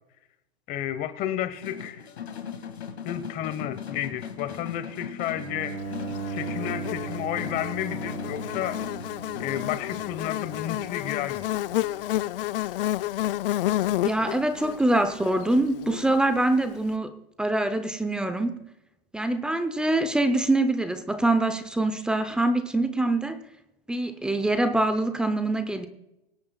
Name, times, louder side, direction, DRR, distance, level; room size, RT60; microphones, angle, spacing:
voice 1, 0.7-2.1 3.0-5.9 6.3-8.8 9.4-11.5, left 11 dB, 30° left, 1.0 m, -32 dB
sound 1, 1.6-10.1, left 7 dB, 85° left, 2.0 m, -39 dB
Bowed string instrument, 5.2-12.2, right 4 dB, 85° right, 4.2 m, -38 dB
Buzz, 6.1-16.5, left 14 dB, 60° left, 0.5 m, -31 dB
voice 2, 14.0-17.1 17.4-18.6 19.1-23.4 23.9-25.9, right 2 dB, 5° right, 0.6 m, -24 dB
25.0 x 8.6 x 2.3 m
hypercardioid pair, 140°, 31 cm